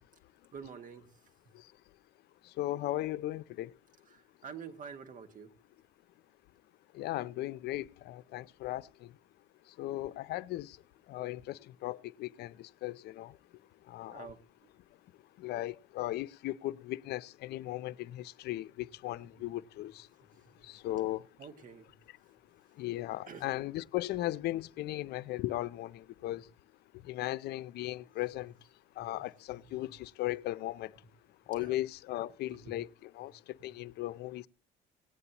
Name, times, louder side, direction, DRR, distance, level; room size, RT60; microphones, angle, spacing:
voice 1, 0.5-1.1 4.1-5.5 14.1-14.4 19.4-19.5 20.3-20.5 20.9-21.0 21.4-21.9 23.3-23.4 29.0-29.1 29.7-29.8 31.5-31.8 32.5-32.8, right 6 dB, 50° right, 1.8 m, -48 dB
voice 2, 2.4-3.7 6.9-9.1 9.7-10.8 11.1-13.4 13.9-14.3 15.4-20.1 20.6-21.3 22.1-22.2 22.8-26.5 27.0-28.5 29.0-31.0 31.5-34.5, left 16 dB, 75° left, 0.6 m, -37 dB
18.0 x 9.7 x 2.9 m
cardioid pair, 110°, 17 cm